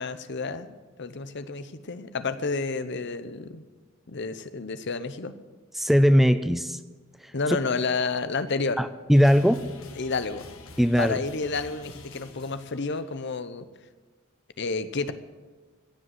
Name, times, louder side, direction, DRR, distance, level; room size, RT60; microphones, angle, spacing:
voice 1, 0.0-3.6 4.1-5.3 7.3-8.8 10.0-10.5 11.0-13.7 14.6-15.1, left 4 dB, 55° left, 11 dB, 0.8 m, -30 dB
voice 2, 5.8-6.8 7.2-7.3 8.8-9.7 10.8-11.2, equal, ahead, 12 dB, 0.4 m, -20 dB
sound 1, 9.1-13.3, left 3 dB, 75° left, 1.5 m, -47 dB
16.0 x 7.7 x 7.9 m, 1.3 s
head